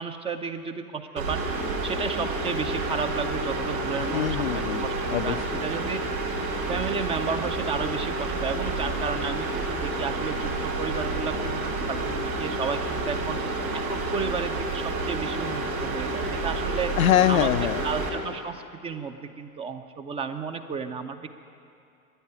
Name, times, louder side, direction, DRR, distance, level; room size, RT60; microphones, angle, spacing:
voice 1, 0.0-1.5 1.8-6.0 6.7-13.4 13.7-17.0 17.3-17.5 17.8-21.3, right 5 dB, 15° right, 8 dB, 0.4 m, -33 dB
sound 1, 1.2-18.1, right 2 dB, 70° right, 4.0 m, -29 dB
voice 2, 4.1-5.6 17.0-17.8, left 12 dB, 70° left, 13 dB, 0.5 m, -24 dB
13.5 x 10.0 x 9.7 m, 2.5 s
figure-of-eight pair, 85°, 44 cm